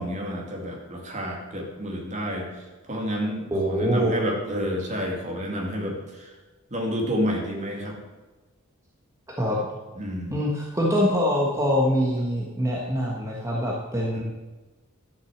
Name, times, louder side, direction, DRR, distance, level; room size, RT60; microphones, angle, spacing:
voice 1, 0.0-6.3 6.7-8.0 10.0-10.3 14.1-14.2, equal, 35° right, 0 dB, 2.3 m, -30 dB
voice 2, 3.5-4.2 9.4-9.7 10.3-14.2, equal, 15° right, -3 dB, 1.4 m, -24 dB
12.0 x 6.6 x 7.3 m, 1.2 s
head